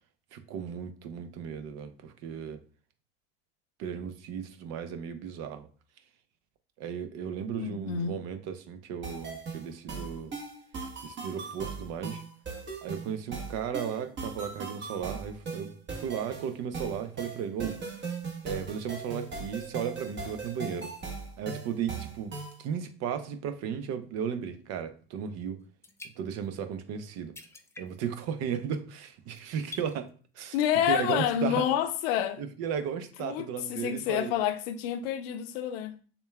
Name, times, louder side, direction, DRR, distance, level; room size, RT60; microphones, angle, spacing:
voice 1, 0.3-2.6 3.8-5.7 6.8-10.3 11.0-12.2 12.8-18.0 18.4-20.9 21.4-25.6 26.2-27.4 27.8-30.1 30.3-30.6 30.9-31.7 32.4-34.3, right 8 dB, 60° right, 0.7 m, -35 dB
voice 2, 7.6-8.2 30.5-32.4 33.2-35.9, left 10 dB, 75° left, 0.6 m, -28 dB
sound 1, 9.0-22.6, right 4 dB, 40° right, 1.3 m, -39 dB
sound 2, 25.2-25.3 25.6-26.6 27.0-27.1 27.3-28.2 28.5-28.8 29.3-30.1 30.7-30.8, left 3 dB, 10° left, 0.4 m, -47 dB
6.7 x 2.3 x 2.3 m
hypercardioid pair, 85°, 30 cm